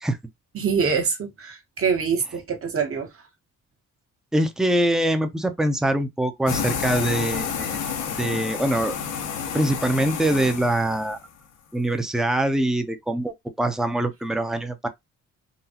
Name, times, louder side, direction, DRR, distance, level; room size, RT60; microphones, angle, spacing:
voice 1, 0.5-3.1, right 6 dB, 45° right, 1.2 m, -24 dB
voice 2, 4.3-7.8 8.2-9.0 9.5-11.2 11.7-14.9, right 1 dB, ahead, 0.6 m, -23 dB
sound 1, 6.5-11.3, left 7 dB, 85° left, 1.0 m, -30 dB
3.9 x 2.3 x 2.8 m
cardioid pair, 90°, 30 cm